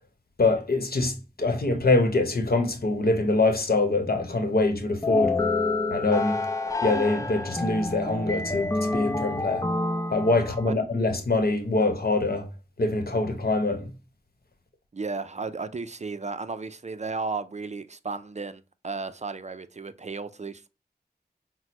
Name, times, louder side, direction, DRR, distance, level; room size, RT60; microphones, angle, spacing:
voice 1, 0.4-5.4 5.9-6.4 6.8-9.7 10.1-12.5 12.8-13.9, left 2 dB, 65° left, 0.9 m, -24 dB
sound 1, 5.0-10.7, left 3 dB, 20° left, 0.6 m, -28 dB
voice 2, 14.9-20.7, right 4 dB, 40° right, 0.4 m, -34 dB
5.9 x 2.1 x 2.9 m
wide cardioid pair, 40°, 17 cm